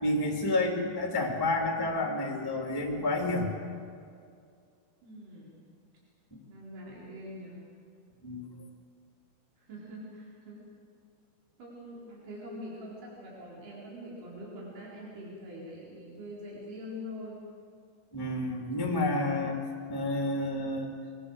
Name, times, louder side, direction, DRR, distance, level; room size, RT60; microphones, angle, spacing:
voice 1, 0.0-3.5 6.3-6.4 8.2-8.4 18.1-19.6 19.9-20.9, left 2 dB, 5° left, 1 dB, 2.0 m, -30 dB
voice 2, 5.0-5.6 6.5-7.6 9.6-10.6 11.6-17.4, equal, 50° right, -5 dB, 5.8 m, -44 dB
23.5 x 22.5 x 6.5 m, 2.3 s
omnidirectional pair, 4.8 m